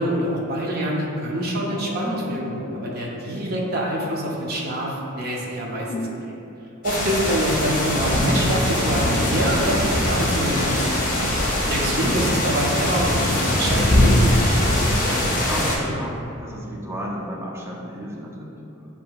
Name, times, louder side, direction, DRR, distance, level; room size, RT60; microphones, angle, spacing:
voice 1, 0.0-5.9 6.2-6.4 6.8-11.1 11.7-14.2, right 1 dB, 45° right, -2 dB, 0.7 m, -25 dB
sound 1, 1.6-6.3 6.6-6.9, left 2 dB, 65° left, 0.4 m, -37 dB
sound 2, 6.8-15.7, left 1 dB, 40° left, 0.9 m, -21 dB
sound 3, 7.2-12.3, right 1 dB, 85° right, 0.6 m, -34 dB
voice 2, 14.7-18.6, equal, 10° right, -4 dB, 0.6 m, -33 dB
7.5 x 2.9 x 2.3 m, 2.8 s
head